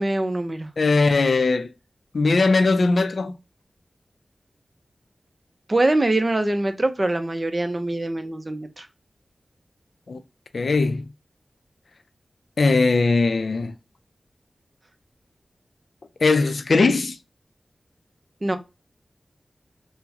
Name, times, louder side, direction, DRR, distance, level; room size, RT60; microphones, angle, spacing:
voice 1, 0.0-0.7 5.7-8.9 18.4-18.6, right 2 dB, 35° right, 0.6 m, -23 dB
voice 2, 0.8-1.7 2.1-3.3 10.1-10.2 10.5-11.0 12.6-13.7 16.2-17.2, left 3 dB, 80° left, 0.4 m, -19 dB
3.6 x 2.1 x 2.8 m
cardioid pair, 55°, 0 cm